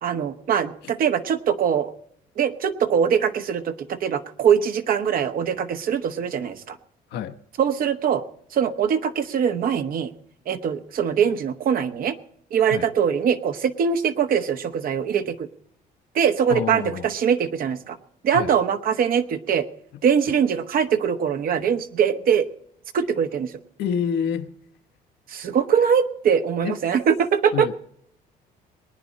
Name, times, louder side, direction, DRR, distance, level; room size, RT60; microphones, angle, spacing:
voice 1, 0.0-1.9 2.4-6.8 7.6-8.2 8.5-10.1 10.5-12.1 12.5-15.5 16.1-18.0 18.2-19.7 20.0-22.5 22.9-23.5 25.3-27.8, right 7 dB, 60° right, 1.2 m, -22 dB
voice 2, 16.5-17.1 18.3-18.5 23.8-24.5 26.6-26.8 27.5-27.7, left 8 dB, 75° left, 1.2 m, -27 dB
22.5 x 9.7 x 4.2 m
cardioid pair, 110°, 17 cm